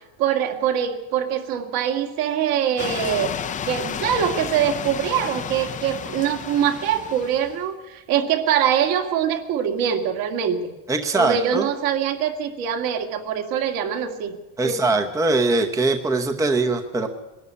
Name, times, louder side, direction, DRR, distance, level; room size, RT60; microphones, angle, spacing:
voice 1, 0.2-3.3 3.7-10.7 11.1-14.3 14.6-14.8, right 9 dB, 60° right, 5 dB, 2.3 m, -23 dB
sound 1, 2.8-7.7, left 8 dB, 20° left, 0.6 m, -32 dB
voice 2, 10.9-11.7 14.6-17.1, right 3 dB, 10° right, 5 dB, 0.8 m, -21 dB
21.5 x 12.5 x 9.7 m, 1.1 s
cardioid pair, 165°, 38 cm